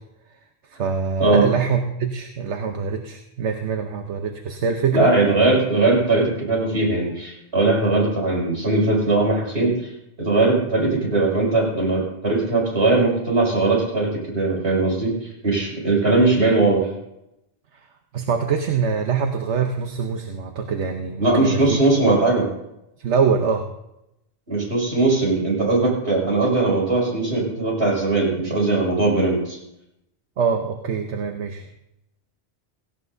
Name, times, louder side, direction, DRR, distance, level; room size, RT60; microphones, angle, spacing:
voice 1, 0.7-5.1 18.1-22.1 23.0-23.7 30.4-31.7, right 6 dB, 90° right, 4 dB, 1.2 m, -24 dB
voice 2, 4.9-9.9 10.2-16.9 21.2-22.5 24.5-29.6, right 2 dB, 70° right, -4 dB, 6.2 m, -20 dB
17.5 x 16.5 x 2.7 m, 0.85 s
omnidirectional pair, 1.1 m